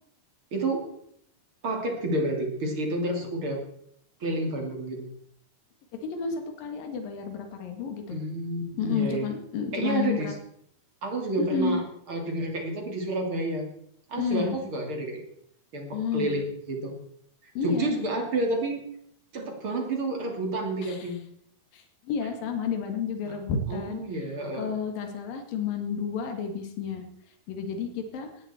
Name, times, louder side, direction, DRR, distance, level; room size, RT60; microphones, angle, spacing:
voice 1, 0.5-0.9 1.6-3.6 4.2-5.1 8.1-9.2 9.7-10.3 11.0-13.7 14.1-15.2 15.7-16.4 16.7-17.0 17.6-18.8 19.3-21.2 23.7-24.7, right 2 dB, 35° right, 2 dB, 3.3 m, -29 dB
voice 2, 6.0-8.2 8.8-10.3 11.4-11.8 14.2-14.6 15.9-16.4 17.6-18.1 20.8-21.1 21.7-24.0 24.5-27.0 27.5-28.3, left 6 dB, 70° left, 6 dB, 3.6 m, -31 dB
18.5 x 13.5 x 4.4 m, 0.69 s
omnidirectional pair, 4.3 m